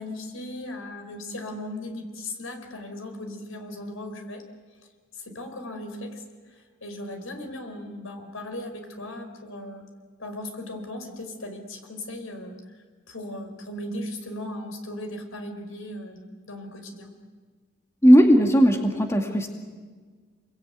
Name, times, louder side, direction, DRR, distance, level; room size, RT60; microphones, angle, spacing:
voice 1, 0.0-4.4 5.1-6.2 6.5-9.8 10.2-12.5 13.1-17.1, left 1 dB, 85° left, 5 dB, 5.0 m, -37 dB
voice 2, 18.0-19.5, equal, 15° left, 3 dB, 2.1 m, -17 dB
28.5 x 22.5 x 9.3 m, 1.5 s
head